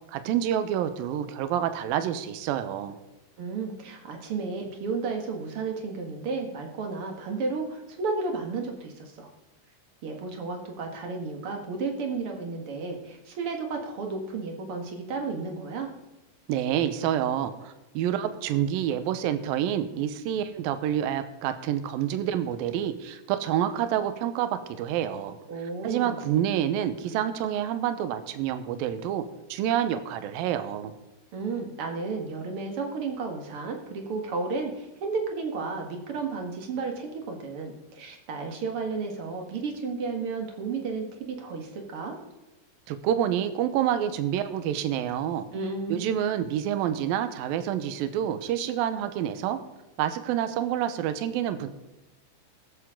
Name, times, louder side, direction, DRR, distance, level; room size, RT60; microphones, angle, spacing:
voice 1, 0.1-3.0 16.5-25.4 25.8-29.2 29.5-30.9 42.9-45.5 45.9-49.6 50.0-51.7, right 10 dB, 75° right, 10 dB, 2.2 m, -28 dB
voice 2, 3.4-9.3 10.0-15.9 25.5-26.2 31.3-42.2 45.5-46.0, right 4 dB, 50° right, 3 dB, 1.7 m, -33 dB
19.5 x 8.1 x 3.8 m, 1.0 s
omnidirectional pair, 5.1 m